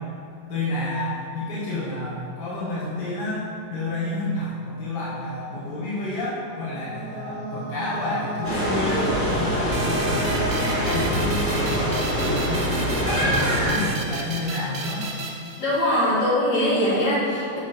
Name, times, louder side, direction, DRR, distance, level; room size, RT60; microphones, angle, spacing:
voice 1, 0.5-10.4 10.7-15.2, left 2 dB, 70° left, -8 dB, 1.8 m, -30 dB
sound 1, 6.1-13.9, right 1 dB, 50° right, 0.8 m, -33 dB
sound 2, 8.4-13.7, equal, 35° left, 1.7 m, -24 dB
sound 3, 9.7-16.1, right 3 dB, 85° right, 0.4 m, -34 dB
voice 2, 15.6-17.6, left 1 dB, 85° left, -7 dB, 2.6 m, -22 dB
7.2 x 4.6 x 5.6 m, 2.3 s
omnidirectional pair, 2.0 m